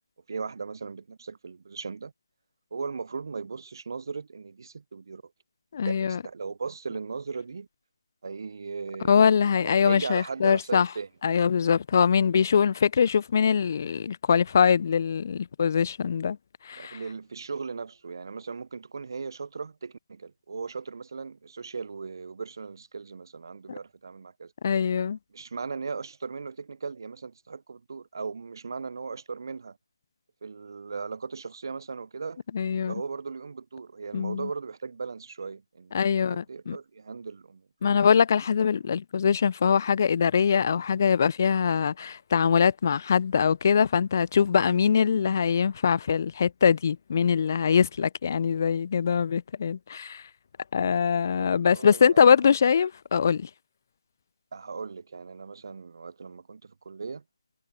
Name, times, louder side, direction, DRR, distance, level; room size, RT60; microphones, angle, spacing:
voice 1, 0.3-2.1 2.7-5.2 5.8-7.7 8.2-9.3 9.6-11.1 16.8-24.5 25.3-29.8 30.4-32.4 32.7-37.7 51.4-52.4 54.5-57.2, right 5 dB, 45° right, 0.6 m, -37 dB
voice 2, 5.7-6.2 9.1-10.9 11.2-16.4 16.7-17.0 24.6-25.2 32.5-32.9 34.1-34.5 35.9-36.8 37.8-50.2 50.7-53.5, left 7 dB, 35° left, 0.4 m, -23 dB
figure-of-eight pair, 160°, 3 cm